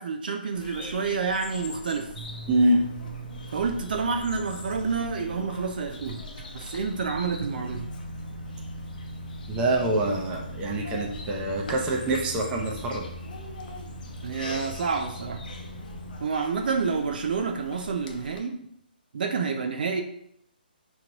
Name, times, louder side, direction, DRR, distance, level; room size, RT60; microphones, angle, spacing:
voice 1, 0.0-2.1 3.5-6.2 6.5-7.9 14.2-15.4 16.2-18.7 19.1-20.0, right 5 dB, 60° right, 4 dB, 0.5 m, -29 dB
Bird vocalization bird call bird song, 0.5-18.4, left 2 dB, 55° left, 0.8 m, -43 dB
sound 1, 2.1-16.2, right 1 dB, 40° right, 0.9 m, -40 dB
voice 2, 2.5-2.8 9.5-13.1, right 1 dB, 15° right, -1 dB, 0.7 m, -25 dB
5.0 x 3.1 x 2.9 m, 0.73 s
hypercardioid pair, 150°, 5 cm